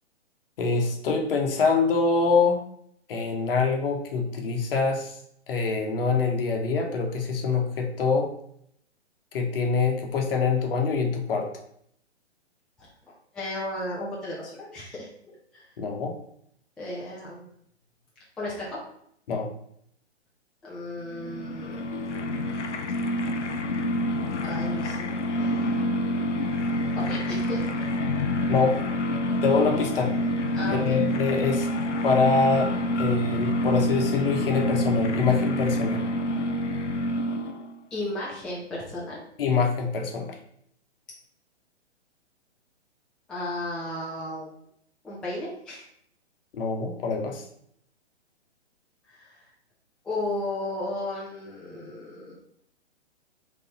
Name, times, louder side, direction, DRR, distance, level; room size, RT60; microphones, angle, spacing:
voice 1, 0.6-2.6 3.1-5.1 5.5-8.3 9.3-11.5 15.8-16.2 19.3-19.5 28.5-28.8 29.4-30.1 30.7-31.7 32.0-36.0 39.4-40.4 46.5-47.4, left 4 dB, 55° left, 3 dB, 1.0 m, -24 dB
voice 2, 13.3-15.1 15.5-15.7 16.8-17.5 18.4-18.8 20.6-21.8 24.4-25.8 27.0-27.6 30.5-31.0 37.9-39.2 43.3-44.5 45.0-45.8 49.1-49.4 50.0-52.3, left 1 dB, ahead, -7 dB, 0.4 m, -34 dB
sound 1, 21.1-37.8, left 1 dB, 85° left, 0.6 m, -27 dB
3.9 x 3.4 x 4.0 m, 0.68 s
figure-of-eight pair, 125°, 34 cm